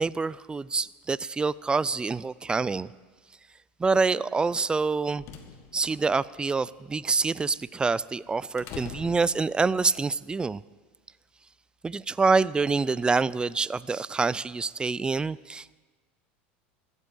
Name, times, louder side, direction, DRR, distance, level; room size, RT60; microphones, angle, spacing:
voice 1, 0.0-2.9 3.8-5.2 5.7-10.6 11.8-15.8, right 4 dB, 15° right, 20 dB, 0.4 m, -26 dB
sound 1, 5.0-9.9, left 6 dB, 50° left, 1.8 m, -46 dB
14.5 x 8.1 x 8.8 m, 1.4 s
hypercardioid pair, 100°, 6 cm